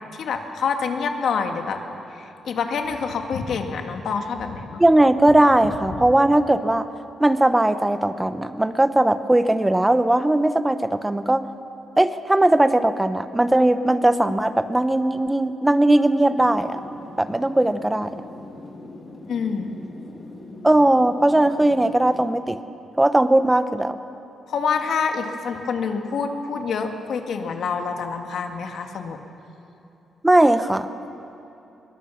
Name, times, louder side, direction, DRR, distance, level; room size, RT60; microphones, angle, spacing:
voice 1, 0.1-1.8 2.1-4.8 19.3-19.8 24.5-29.2, left 5 dB, 65° left, 5 dB, 2.0 m, -27 dB
voice 2, 4.8-6.9 7.2-11.5 12.0-16.8 17.2-18.1 20.6-22.6 23.0-24.0 30.2-30.9, right 1 dB, 10° right, 11 dB, 0.8 m, -18 dB
sound 1, 16.4-22.3, left 2 dB, 30° left, 2.4 m, -41 dB
23.5 x 22.0 x 7.2 m, 2.8 s
wide cardioid pair, 145°, 0 cm